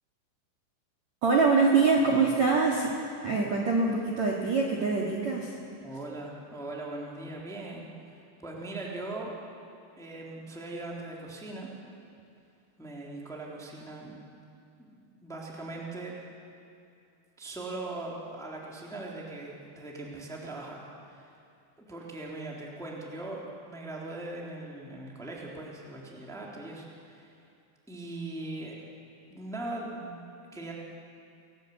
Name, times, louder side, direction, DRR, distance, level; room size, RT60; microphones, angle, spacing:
voice 1, 1.2-2.9 3.2-5.6, right 4 dB, 50° right, -2 dB, 2.3 m, -24 dB
voice 2, 5.8-9.3 10.0-11.7 12.8-14.2 14.8-16.2 17.4-21.3 21.8-27.3 27.9-28.8 29.3-30.2 30.5-30.7, right 2 dB, ahead, -2 dB, 2.4 m, -40 dB
28.5 x 18.5 x 8.5 m, 2.5 s
omnidirectional pair, 6.0 m